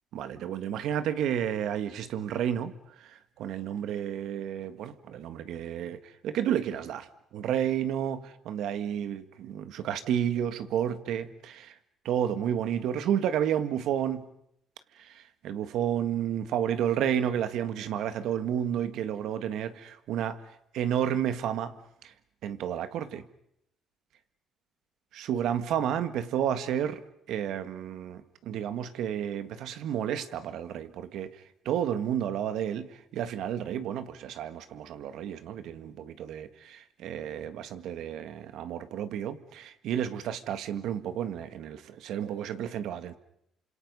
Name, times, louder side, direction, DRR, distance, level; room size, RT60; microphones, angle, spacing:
voice 1, 0.1-2.7 3.0-7.1 7.3-11.7 12.0-14.2 15.0-20.4 20.7-21.7 22.0-22.1 22.4-23.2 25.1-27.0 27.3-43.2, right 9 dB, 75° right, 11 dB, 1.6 m, -31 dB
29.0 x 26.5 x 5.5 m, 0.76 s
cardioid pair, 100°, 0 cm